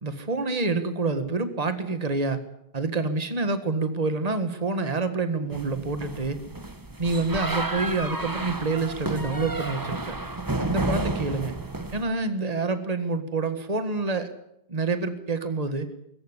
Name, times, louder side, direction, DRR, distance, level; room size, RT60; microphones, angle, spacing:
voice 1, 0.0-2.4 2.7-6.4 7.0-10.1 10.6-11.5 11.9-14.3 14.7-15.9, right 3 dB, 40° right, 9 dB, 1.8 m, -27 dB
sound 1, 5.5-12.0, right 2 dB, 20° right, 1.2 m, -31 dB
23.0 x 14.5 x 9.8 m, 0.78 s
omnidirectional pair, 1.0 m